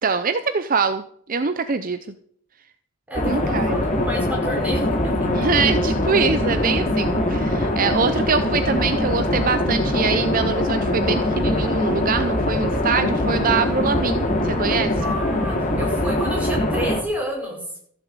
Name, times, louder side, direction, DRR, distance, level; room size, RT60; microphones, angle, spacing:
voice 1, 0.0-2.0 3.3-3.8 5.3-14.9, right 5 dB, 40° right, 11 dB, 0.6 m, -23 dB
sound 1, 3.1-17.0, left 1 dB, 35° left, 2.7 m, -22 dB
voice 2, 3.1-5.3 15.0-17.6, equal, 5° right, -2 dB, 5.6 m, -30 dB
14.5 x 7.2 x 8.2 m, 0.65 s
head